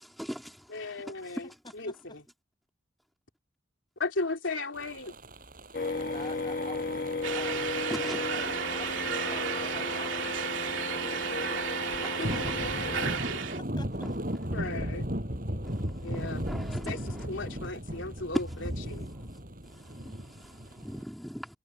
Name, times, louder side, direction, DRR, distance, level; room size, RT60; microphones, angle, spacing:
voice 1, 0.0-0.7 5.8-5.9 7.9-8.2 9.3-9.5 12.8-13.0 15.6-17.7 18.3-18.4 19.6-21.6, equal, ahead, 2.2 m, -40 dB
voice 2, 0.7-2.2 4.0-5.1 12.2-13.4 14.5-15.0 16.0-16.4 16.9-19.1, left 3 dB, 80° left, 3.3 m, -36 dB
sound 1, 4.7-21.0, equal, 45° right, 7.8 m, -37 dB
sound 2, 5.7-13.2, left 3 dB, 45° left, 1.4 m, -34 dB
voice 3, 5.9-11.5 12.0-12.1 13.6-14.1, left 2 dB, 20° left, 6.1 m, -48 dB
sound 3, 7.2-13.6, right 7 dB, 80° right, 2.8 m, -33 dB
head